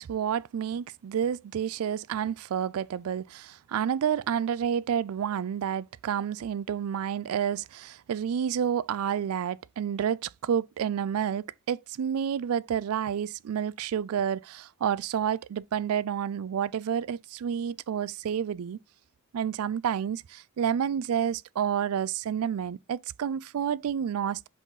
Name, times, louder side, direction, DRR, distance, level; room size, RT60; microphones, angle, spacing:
voice 1, 0.0-18.8 19.3-24.5, right 8 dB, 70° right, 0.3 m, -29 dB
5.7 x 4.8 x 4.0 m
head